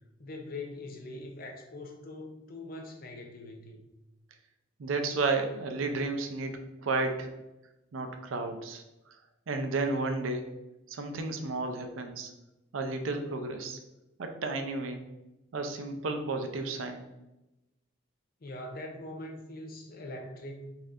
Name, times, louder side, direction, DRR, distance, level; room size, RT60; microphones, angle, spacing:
voice 1, 0.2-3.9 18.4-20.8, left 2 dB, 45° left, 0.5 m, -42 dB
voice 2, 4.8-7.3 7.9-9.1 9.5-10.4 10.9-12.3 12.7-13.8 14.2-15.1 15.5-17.0, right 3 dB, 90° right, 0.5 m, -32 dB
4.1 x 2.7 x 2.4 m
head